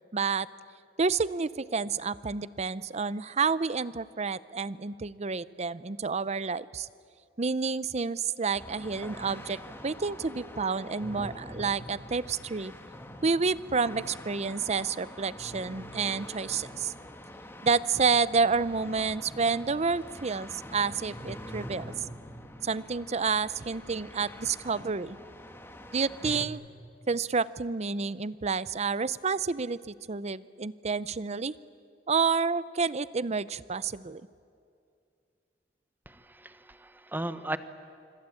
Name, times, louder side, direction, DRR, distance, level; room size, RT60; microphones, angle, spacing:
voice 1, 0.1-0.5 1.0-6.9 7.4-9.6 9.8-12.7 13.2-16.9 17.6-21.9 22.6-25.2 25.9-26.6 27.1-31.5 32.1-34.2, right 5 dB, 40° right, 18 dB, 0.6 m, -29 dB
sound 1, 8.5-26.5, equal, 15° left, 1.8 m, -45 dB
voice 2, 36.1-37.6, right 1 dB, 10° right, 11 dB, 1.1 m, -36 dB
26.0 x 25.0 x 8.5 m, 2.3 s
head